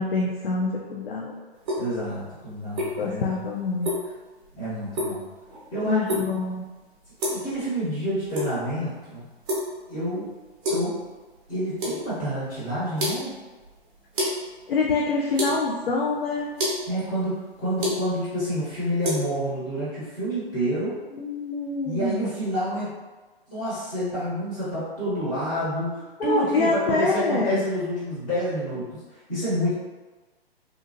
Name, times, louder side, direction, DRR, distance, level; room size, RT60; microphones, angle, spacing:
voice 1, 0.0-1.3 3.0-3.9 5.9-6.6 14.7-16.5 21.2-22.2 26.2-27.6, left 3 dB, 65° left, -2 dB, 0.5 m, -25 dB
sound 1, 1.6-19.2, equal, 15° right, 0.5 m, -32 dB
voice 2, 1.8-3.4 4.6-5.2 5.7-6.1 7.3-9.3 9.9-10.3 10.7-11.0 11.5-13.4 16.9-21.0 21.8-22.9 23.5-29.7, equal, 25° left, -11 dB, 1.2 m, -28 dB
2.8 x 2.3 x 2.9 m, 1.2 s
figure-of-eight pair, 125°, 31 cm